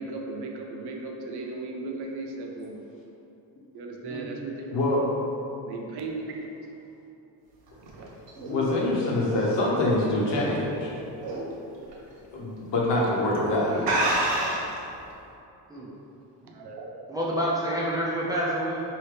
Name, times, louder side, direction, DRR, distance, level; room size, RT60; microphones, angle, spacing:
voice 1, 0.0-2.8 3.7-4.7 5.6-6.4 7.8-8.1 16.4-17.1, right 3 dB, 65° right, 0 dB, 0.6 m, -36 dB
voice 2, 4.7-5.0 8.4-10.9 12.3-13.9, left 1 dB, 75° left, -4 dB, 1.0 m, -25 dB
sound 1, 7.7-10.8 11.2-11.5 11.9-12.0 12.8-13.1 13.4-13.5 13.8-14.8, right 1 dB, 80° right, 1.0 m, -28 dB
voice 3, 17.1-18.8, equal, 10° right, -7 dB, 0.4 m, -28 dB
4.7 x 2.8 x 3.3 m, 2.8 s
cardioid pair, 165°, 42 cm